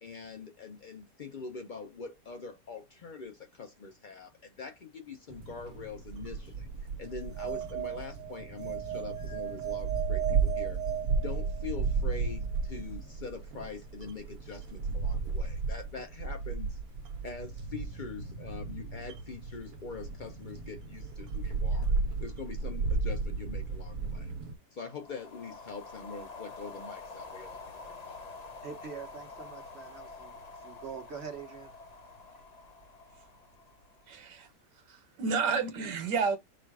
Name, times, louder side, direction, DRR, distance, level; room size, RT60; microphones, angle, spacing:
voice 1, 0.0-6.7 7.0-10.8 11.1-16.8 17.2-21.9 22.2-24.3 24.7-28.2, left 5 dB, 75° left, 0.4 m, -44 dB
sound 1, 5.3-24.5, right 4 dB, 65° right, 1.2 m, -34 dB
sound 2, 7.1-11.9, right 12 dB, 15° right, 0.8 m, -37 dB
sound 3, 24.8-34.3, left 3 dB, 35° left, 0.6 m, -47 dB
voice 2, 28.6-31.7, right 6 dB, 50° right, 0.9 m, -44 dB
voice 3, 34.1-34.5 34.9-36.4, right 5 dB, 90° right, 1.5 m, -30 dB
4.2 x 2.4 x 4.6 m
omnidirectional pair, 1.8 m